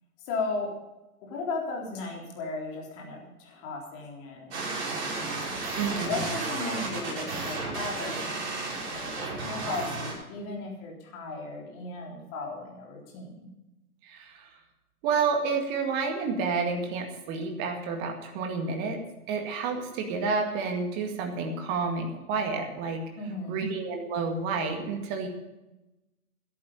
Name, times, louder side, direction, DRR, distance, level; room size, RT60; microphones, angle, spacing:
voice 1, 0.2-0.7 1.2-13.5 23.2-23.6, left 3 dB, 25° left, -1 dB, 3.8 m, -36 dB
sound 1, 4.5-10.1, right 3 dB, 45° right, 6.5 m, -33 dB
voice 2, 5.8-6.1 14.0-14.5 15.0-19.0 19.3-23.0 23.5-25.3, right 4 dB, 20° right, 4 dB, 2.0 m, -30 dB
14.0 x 11.0 x 5.5 m, 0.98 s
figure-of-eight pair, 135°, 46 cm